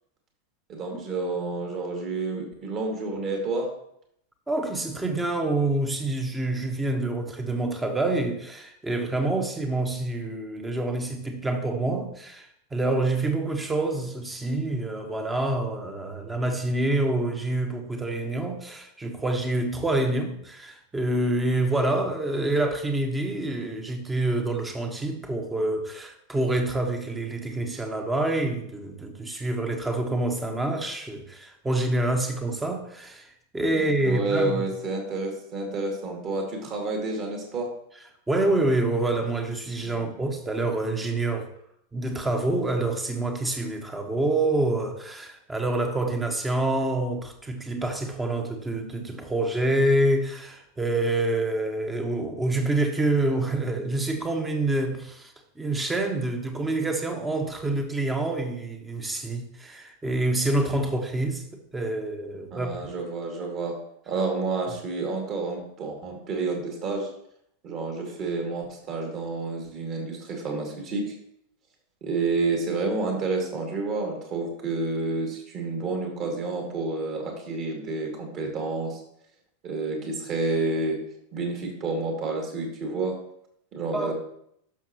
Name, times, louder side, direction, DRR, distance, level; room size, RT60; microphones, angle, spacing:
voice 1, 0.7-3.7 33.8-37.7 62.5-63.8 64.1-67.1 67.6-71.1 72.0-79.0 79.6-81.0 81.3-83.2 83.7-84.1, right 3 dB, 35° right, 2.5 m, -29 dB
voice 2, 4.5-33.3 33.5-34.7 38.3-41.5 41.9-62.9 83.9-84.1, right 2 dB, 10° right, 1.2 m, -27 dB
12.0 x 6.4 x 3.1 m
figure-of-eight pair, 90°, 0 cm